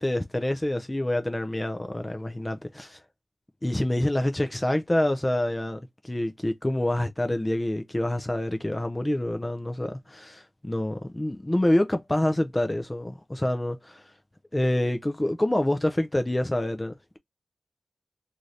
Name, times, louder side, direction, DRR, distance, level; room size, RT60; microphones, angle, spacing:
voice 1, 0.0-3.0 3.6-14.1 14.5-16.9, left 1 dB, 15° left, 0.3 m, -27 dB
2.6 x 2.4 x 3.1 m
wide cardioid pair, 105°, 0 cm